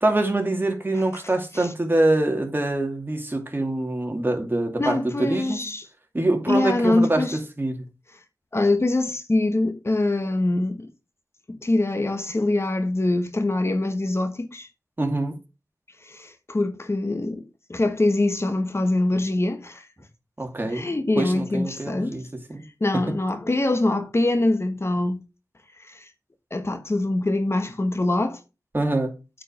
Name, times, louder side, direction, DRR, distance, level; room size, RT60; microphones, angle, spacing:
voice 1, 0.0-5.6 6.1-7.2 7.6-7.8 15.0-15.3 20.4-20.9 21.2-22.2 22.5-22.6 22.9-23.0 28.7-29.1, right 2 dB, 30° right, 2.5 m, -24 dB
voice 2, 4.8-5.9 6.5-7.4 8.5-10.9 11.5-14.7 16.0-17.4 17.7-19.8 20.7-22.2 22.8-25.2 25.9-26.1 26.5-28.4, left 2 dB, 40° left, 1.2 m, -24 dB
8.8 x 5.0 x 5.2 m
wide cardioid pair, 55°, 7 cm